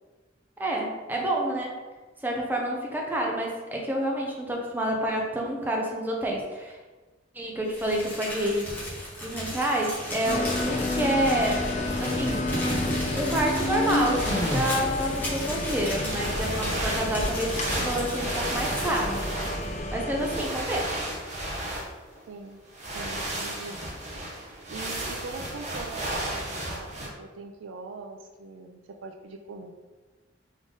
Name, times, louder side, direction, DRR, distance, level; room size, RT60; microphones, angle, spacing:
voice 1, 0.6-1.8 2.2-6.8 7.3-8.7 9.2-11.6 12.0-12.4 13.1-19.2 19.9-21.0, right 1 dB, 10° right, -1 dB, 0.6 m, -28 dB
Crumpling crinkling, 7.7-19.8, equal, 10° left, 1.3 m, -35 dB
sound 1, 10.2-20.4, left 2 dB, 40° left, 0.5 m, -30 dB
sound 2, 14.0-15.1 15.8-22.2 22.6-27.1, right 1 dB, 40° right, 1.0 m, -34 dB
voice 2, 22.3-22.6 22.9-23.8 24.7-29.7, right 4 dB, 85° right, 3 dB, 0.4 m, -42 dB
3.7 x 3.6 x 3.7 m, 1.3 s
head